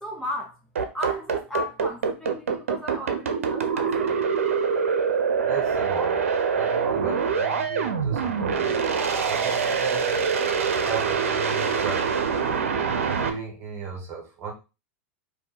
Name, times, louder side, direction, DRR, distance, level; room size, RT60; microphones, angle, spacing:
voice 1, 0.0-0.6 0.9-4.1, left 1 dB, 5° left, 1.2 m, -35 dB
sound 1, 0.8-13.3, right 6 dB, 85° right, 0.8 m, -24 dB
voice 2, 5.4-6.2 6.6-8.8 9.3-10.3 10.8-12.1 13.1-14.5, right 5 dB, 40° right, 1.8 m, -35 dB
4.4 x 2.8 x 4.0 m
hypercardioid pair, 110°, 7 cm